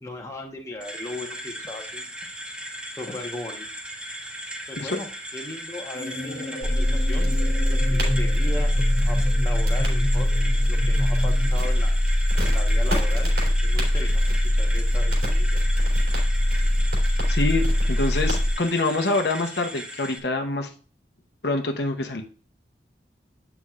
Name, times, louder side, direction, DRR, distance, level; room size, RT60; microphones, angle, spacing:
voice 1, 0.0-2.1 2.9-3.6 4.7-5.1 5.3-7.3 7.7-10.3 10.7-12.0 12.5-13.3 13.6-14.2 14.5-15.6, left 1 dB, 15° left, 1 dB, 1.1 m, -37 dB
sound 1, 0.8-20.2, equal, 5° right, 0.7 m, -37 dB
sound 2, 5.9-11.6, left 1 dB, 45° left, 1.8 m, -31 dB
sound 3, 6.6-18.5, left 1 dB, 70° right, 3.0 m, -22 dB
voice 2, 17.3-20.7 21.4-22.2, left 2 dB, 75° left, 4 dB, 0.9 m, -26 dB
8.3 x 5.9 x 2.4 m, 0.40 s
head